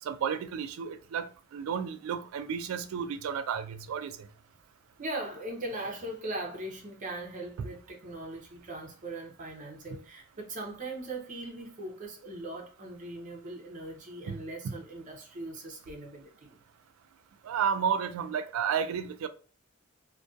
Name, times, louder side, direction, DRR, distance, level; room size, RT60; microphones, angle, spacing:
voice 1, 0.0-4.3 7.6-7.7 14.3-14.8 17.4-19.3, right 7 dB, 75° right, 0.3 m, -32 dB
voice 2, 5.0-16.6, right 2 dB, 35° right, 0.6 m, -40 dB
2.5 x 2.2 x 2.3 m
head